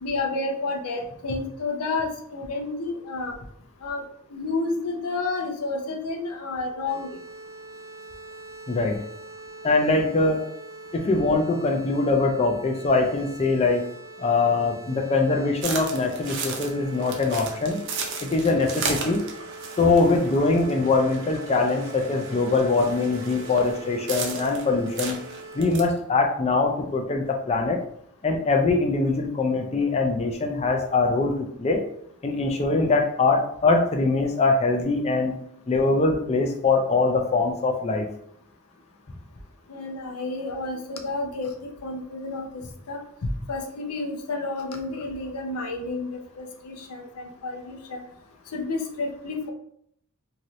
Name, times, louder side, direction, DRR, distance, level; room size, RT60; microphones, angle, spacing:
voice 1, 0.0-3.3 3.8-7.2 11.1-11.3 39.7-43.0 43.5-46.1 46.4-48.0 48.5-49.5, left 3 dB, 80° left, 3 dB, 0.6 m, -30 dB
sound 1, 6.9-25.7, right 2 dB, 75° right, 1.0 m, -42 dB
voice 2, 9.6-10.4 10.9-13.8 14.2-17.8 18.2-19.2 19.8-25.2 25.5-27.8 28.2-31.8 32.2-35.4 35.7-38.1, left 3 dB, 30° left, 3 dB, 0.3 m, -22 dB
sound 2, 15.6-25.8, right 4 dB, 55° right, 0.5 m, -35 dB
2.7 x 2.5 x 3.0 m, 0.70 s
head